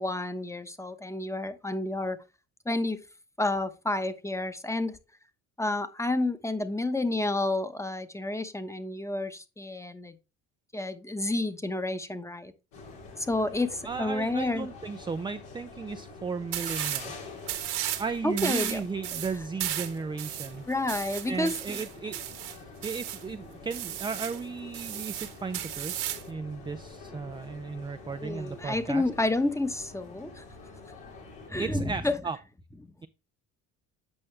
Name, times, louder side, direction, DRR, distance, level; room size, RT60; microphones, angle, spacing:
voice 1, 0.0-2.2 2.6-3.0 3.4-5.0 5.6-10.2 10.7-12.5 13.2-14.7 18.2-18.8 20.6-21.8 28.2-30.4 31.5-32.2, left 2 dB, 5° left, 0.9 m, -30 dB
sound 1, 12.7-31.5, left 3 dB, 85° left, 2.7 m, -47 dB
voice 2, 13.8-17.1 18.0-20.7 21.3-22.2 22.5-29.0 31.6-32.4, right 5 dB, 10° right, 0.3 m, -35 dB
sound 2, 16.5-17.1 17.4-18.1 18.4-23.2 23.7-24.4 24.7-26.3, right 12 dB, 65° right, 1.3 m, -34 dB
8.7 x 5.3 x 3.2 m
hypercardioid pair, 65°, 43 cm